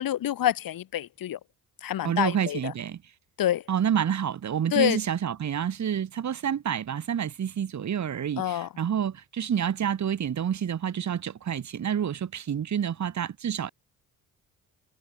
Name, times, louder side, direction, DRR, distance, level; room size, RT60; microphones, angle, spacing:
voice 1, 0.0-1.4 1.8-2.7 3.4-3.6 4.7-5.0 8.4-8.7, left 12 dB, 75° left, 3.0 m, -27 dB
voice 2, 2.0-3.0 3.7-13.7, right 8 dB, 55° right, 2.0 m, -28 dB
cardioid pair, 80°, 34 cm